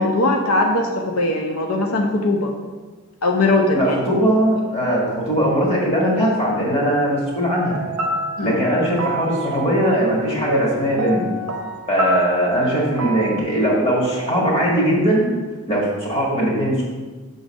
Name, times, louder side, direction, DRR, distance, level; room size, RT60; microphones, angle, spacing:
voice 1, 0.0-2.5 3.2-4.0 8.4-8.5, left 2 dB, 85° left, 2 dB, 0.7 m, -20 dB
voice 2, 3.7-7.8 8.4-11.2 11.9-15.3 15.7-16.8, equal, 30° left, -4 dB, 1.7 m, -20 dB
sound 1, 7.7-13.4, right 1 dB, 80° right, 0.7 m, -28 dB
6.3 x 3.9 x 6.3 m, 1.3 s
head